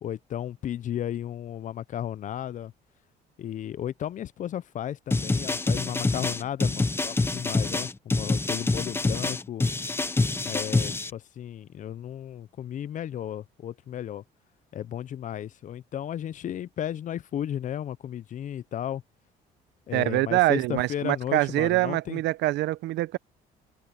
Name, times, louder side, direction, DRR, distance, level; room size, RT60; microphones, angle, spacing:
voice 1, 0.0-2.7 3.4-9.6 10.5-14.2 14.7-19.0 19.9-22.2, left 10 dB, 45° left, 0.5 m, -34 dB
sound 1, 5.1-11.1, left 3 dB, 15° left, 0.9 m, -26 dB
voice 2, 19.9-23.2, right 18 dB, 80° right, 0.7 m, -25 dB
cardioid pair, 105°, 18 cm